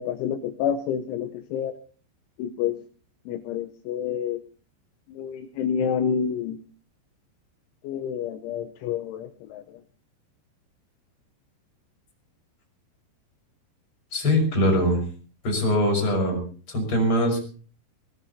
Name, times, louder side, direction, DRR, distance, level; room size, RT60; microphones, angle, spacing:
voice 1, 0.0-1.7 2.4-2.8 3.3-4.4 5.2-6.6 7.8-9.6, left 8 dB, 80° left, 6 dB, 3.2 m, -28 dB
voice 2, 14.1-15.0 15.4-16.4 16.7-17.4, equal, 25° left, 1 dB, 6.3 m, -22 dB
23.0 x 18.5 x 2.8 m, 0.39 s
omnidirectional pair, 5.7 m